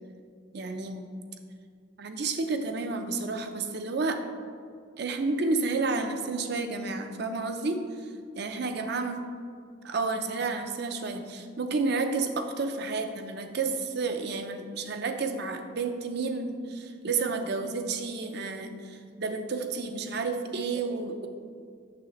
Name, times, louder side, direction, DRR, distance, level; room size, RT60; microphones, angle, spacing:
voice 1, 0.5-1.1 2.0-4.2 5.0-7.8 8.4-9.2 9.8-21.3, right 3 dB, 60° right, 6 dB, 0.5 m, -31 dB
6.8 x 6.4 x 3.0 m, 2.1 s
head